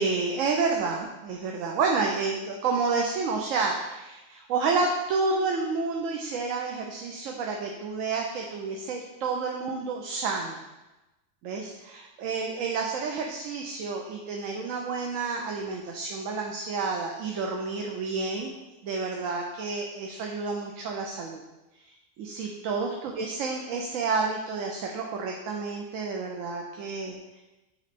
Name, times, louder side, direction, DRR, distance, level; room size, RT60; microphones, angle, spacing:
voice 1, 0.0-10.6 11.4-18.5 18.8-21.4 22.2-27.2, right 4 dB, 85° right, 1 dB, 1.0 m, -30 dB
8.2 x 3.1 x 4.1 m, 1.0 s
omnidirectional pair, 1.3 m